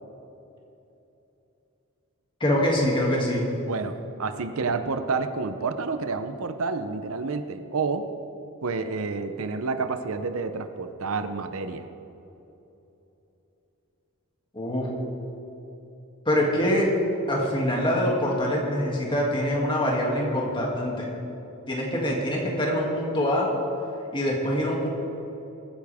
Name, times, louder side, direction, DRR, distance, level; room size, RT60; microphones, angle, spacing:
voice 1, 2.4-3.5 14.5-14.9 16.2-16.9 17.3-21.1 21.7-23.5 24.1-24.9, equal, 20° left, -3 dB, 2.5 m, -24 dB
voice 2, 3.7-8.1 8.6-11.9, right 4 dB, 70° right, 8 dB, 0.7 m, -29 dB
22.5 x 9.9 x 3.6 m, 3.0 s
head